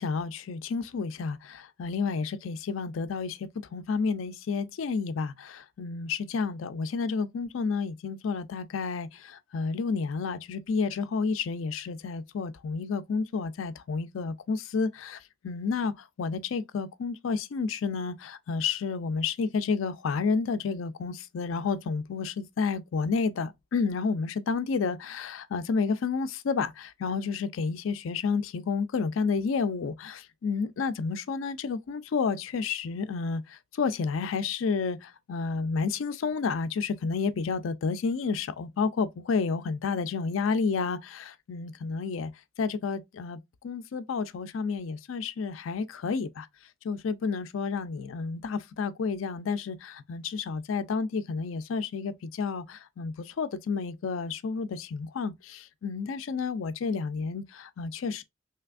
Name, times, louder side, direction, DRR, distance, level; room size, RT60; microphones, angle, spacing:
voice 1, 0.0-15.2 15.4-33.4 33.8-42.3 42.6-43.4 43.6-46.5 46.8-58.2, left 5 dB, 80° left, 0.4 m, -30 dB
3.3 x 2.8 x 2.3 m
head